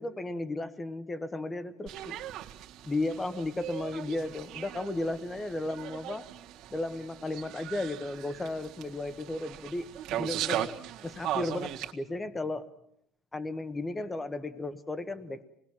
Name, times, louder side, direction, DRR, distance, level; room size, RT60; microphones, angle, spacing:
voice 1, 0.0-2.2 2.8-6.3 6.7-10.8 11.0-12.7 13.3-15.4, left 2 dB, 10° left, 13 dB, 1.1 m, -34 dB
sound 1, 1.9-11.9, right 12 dB, 55° right, 1.8 m, -38 dB
26.5 x 19.5 x 7.3 m, 0.75 s
cardioid pair, 165°, 0 cm